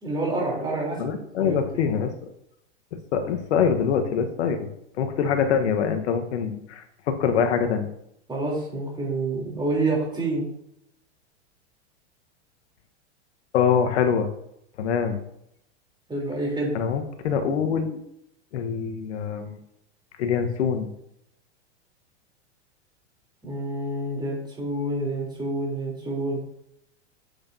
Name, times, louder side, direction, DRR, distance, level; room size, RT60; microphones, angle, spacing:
voice 1, 0.0-1.9 8.3-10.5 16.1-16.7 23.4-26.4, right 2 dB, 15° right, -3 dB, 3.6 m, -28 dB
voice 2, 1.0-2.1 2.9-4.7 5.0-7.9 13.5-14.3 14.8-15.2 16.7-18.0 18.5-19.6 20.2-20.9, left 7 dB, 70° left, 6 dB, 1.4 m, -24 dB
8.5 x 8.2 x 2.8 m, 0.77 s
hypercardioid pair, 115°, 35 cm